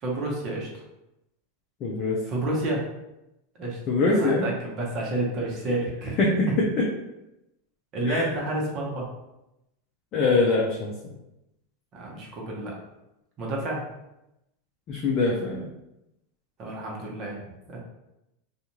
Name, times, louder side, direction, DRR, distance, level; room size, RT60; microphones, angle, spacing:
voice 1, 0.0-0.7 2.3-2.8 3.6-3.8 4.1-6.2 7.9-9.1 11.9-12.7 13.4-13.8 16.6-17.8, right 1 dB, 40° right, -2 dB, 0.9 m, -30 dB
voice 2, 1.8-2.2 3.9-4.5 6.2-6.9 8.1-8.3 10.1-10.9 14.9-15.7, left 3 dB, 40° left, -3 dB, 0.5 m, -23 dB
2.5 x 2.4 x 2.9 m, 0.89 s
supercardioid pair, 130°, 0 cm